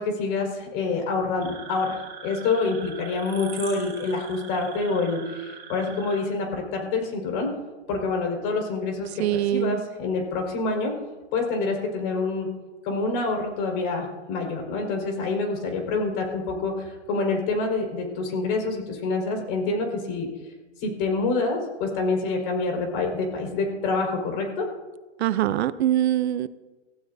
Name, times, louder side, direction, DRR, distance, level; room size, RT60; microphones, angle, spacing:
voice 1, 0.0-7.5 7.9-11.0 11.3-12.5 12.8-20.3 20.8-24.7, left 3 dB, 45° left, 2 dB, 4.7 m, -27 dB
sound 1, 1.4-6.2, right 7 dB, 30° right, 5.9 m, -42 dB
voice 2, 9.2-9.8 25.2-26.5, right 12 dB, 65° right, 15 dB, 0.7 m, -23 dB
23.5 x 15.5 x 2.7 m, 1.2 s
hypercardioid pair, 135°, 35 cm